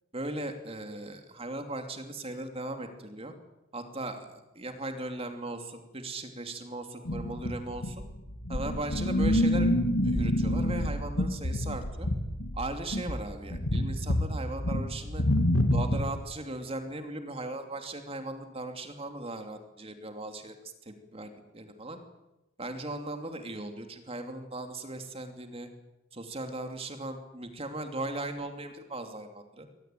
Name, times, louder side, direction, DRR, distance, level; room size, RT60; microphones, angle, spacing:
voice 1, 0.1-3.3 3.7-8.0 8.5-9.8 10.0-12.1 12.6-15.2 15.7-20.5 20.8-22.0 22.6-25.7 26.1-29.7, right 2 dB, 30° right, 6 dB, 2.8 m, -38 dB
sound 1, 7.1-16.2, left 1 dB, 90° left, 2.7 m, -28 dB
24.5 x 18.5 x 9.2 m, 0.95 s
head